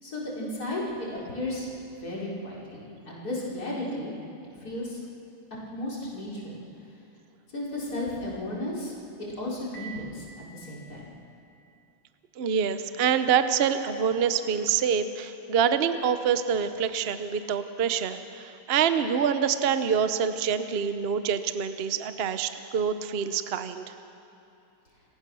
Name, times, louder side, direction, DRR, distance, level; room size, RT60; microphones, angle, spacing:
voice 1, 0.0-1.7 2.0-4.1 4.6-5.0 5.7-6.6 7.5-11.1, left 1 dB, 45° left, -6 dB, 4.9 m, -34 dB
Piano, 9.7-11.7, right 6 dB, 70° left, 3.7 m, -48 dB
voice 2, 12.4-23.9, right 7 dB, 75° right, 10 dB, 0.5 m, -26 dB
29.5 x 15.5 x 6.3 m, 2.8 s
omnidirectional pair, 2.3 m